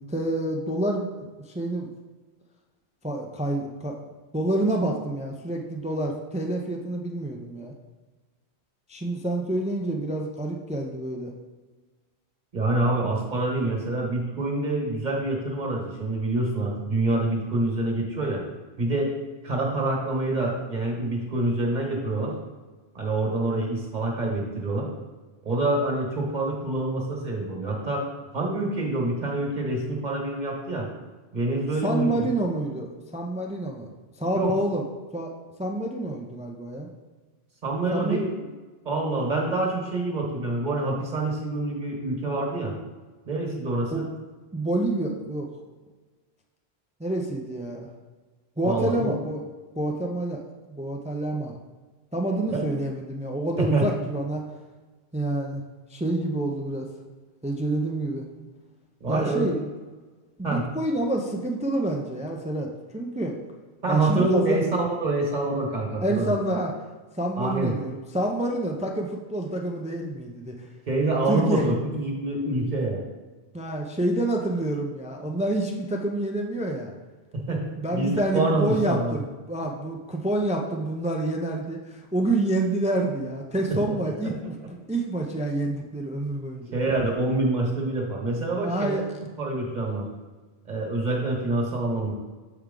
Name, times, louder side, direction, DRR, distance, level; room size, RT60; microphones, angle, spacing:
voice 1, 0.0-1.9 3.0-4.0 4.3-7.7 8.9-11.3 31.8-32.9 33.1-33.9 34.2-34.8 35.1-35.3 35.6-36.9 37.9-38.3 43.9-44.0 44.5-45.5 47.0-47.9 48.6-49.4 49.8-51.6 52.1-54.4 55.1-55.6 55.9-56.9 57.4-58.3 59.1-59.6 60.4-63.4 63.9-64.6 66.0-66.7 67.2-70.6 71.3-71.7 73.5-76.9 77.8-86.7 88.6-89.0, right 1 dB, 10° right, 1 dB, 0.3 m, -28 dB
voice 2, 12.5-18.4 18.8-19.1 19.4-22.3 22.9-24.9 25.4-28.0 28.3-30.9 31.3-32.2 34.3-34.5 37.6-38.5 38.8-42.7 43.3-44.1 48.6-49.1 52.5-52.6 53.6-53.9 59.0-59.4 60.4-60.6 63.8-66.3 67.4-67.7 70.9-73.0 77.3-77.6 77.9-79.2 83.7-84.0 86.7-89.0 89.4-90.0 90.7-92.1, right 2 dB, 45° right, -1 dB, 1.4 m, -26 dB
7.0 x 4.6 x 3.7 m, 1.3 s
omnidirectional pair, 1.1 m